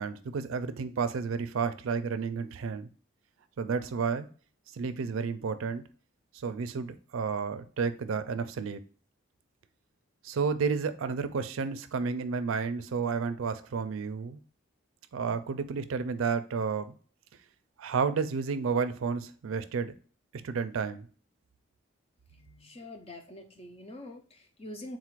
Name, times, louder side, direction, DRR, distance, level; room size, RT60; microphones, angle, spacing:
voice 1, 0.0-2.9 3.6-4.3 4.7-5.8 6.4-8.8 10.2-14.4 15.1-16.9 17.8-19.9 20.4-21.1, right 5 dB, 80° right, 11 dB, 0.4 m, -31 dB
voice 2, 22.3-25.0, left 1 dB, 30° left, 5 dB, 0.5 m, -45 dB
3.8 x 2.5 x 4.5 m, 0.40 s
head